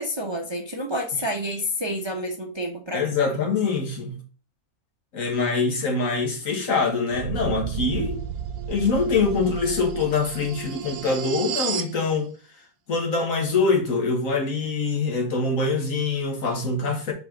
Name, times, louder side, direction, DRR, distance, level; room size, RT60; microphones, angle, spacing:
voice 1, 0.0-3.0, equal, 25° right, 0.7 m, -29 dB
voice 2, 2.9-4.1 5.1-8.2 8.7-12.3 12.9-17.1, left 4 dB, 65° left, 1.7 m, -24 dB
sound 1, 7.1-12.0, right 8 dB, 80° right, 1.1 m, -32 dB
5.5 x 4.1 x 4.9 m
omnidirectional pair, 1.5 m